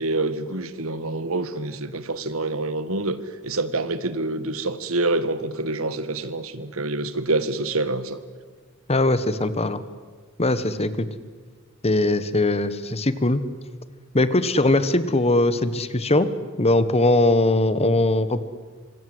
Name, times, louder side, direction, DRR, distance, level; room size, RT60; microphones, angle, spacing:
voice 1, 0.0-3.2 3.4-8.2, right 2 dB, 70° right, 13 dB, 1.6 m, -26 dB
voice 2, 8.9-9.8 10.4-11.1 11.8-13.4 14.1-16.3 16.6-18.4, left 2 dB, 30° left, 13 dB, 1.3 m, -20 dB
26.0 x 26.0 x 8.0 m, 1.5 s
head